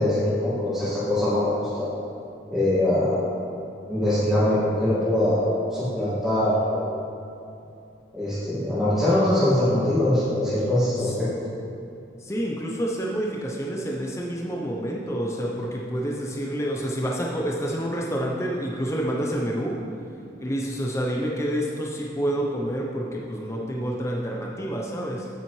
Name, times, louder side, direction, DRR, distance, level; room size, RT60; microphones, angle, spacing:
voice 1, 0.0-1.9 2.5-3.3 3.8-7.0 8.1-11.5, left 1 dB, ahead, -15 dB, 2.0 m, -23 dB
voice 2, 12.2-19.8 20.4-25.3, equal, 15° left, -2 dB, 0.7 m, -28 dB
8.9 x 8.7 x 3.2 m, 2.8 s
head